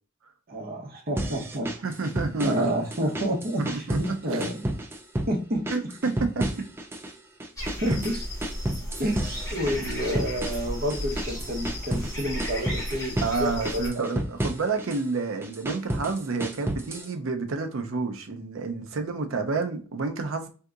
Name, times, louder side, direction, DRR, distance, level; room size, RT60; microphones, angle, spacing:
voice 1, 0.5-1.7 2.4-4.7 5.3-5.6 7.8-8.3 9.0-13.1 13.4-14.1, equal, 45° right, 0.9 m, -29 dB
sound 1, 1.2-2.7 2.9-4.1 4.4-5.3 5.7-7.1 7.4-12.1 12.4-13.4 13.6-15.0 15.4-17.1, right 1 dB, 10° right, 0.3 m, -31 dB
voice 2, 1.8-2.7 3.6-4.4 5.7-6.7 7.9-8.1 13.2-20.5, right 4 dB, 70° right, 0.5 m, -29 dB
sound 2, 7.6-13.9, left 1 dB, 15° left, 1.5 m, -34 dB
3.7 x 2.7 x 2.4 m
head